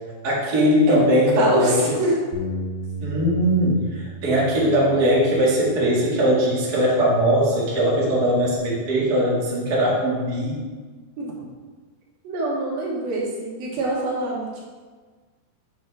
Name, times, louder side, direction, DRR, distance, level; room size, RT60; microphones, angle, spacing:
voice 1, 0.2-1.9 3.0-10.6, equal, 45° right, -7 dB, 1.2 m, -20 dB
voice 2, 0.9-2.2 11.2-11.3 12.2-14.6, right 2 dB, 65° right, -4 dB, 2.8 m, -25 dB
Bass guitar, 2.3-8.6, right 1 dB, 85° left, 3.1 m, -37 dB
7.5 x 6.8 x 3.4 m, 1.4 s
omnidirectional pair, 4.9 m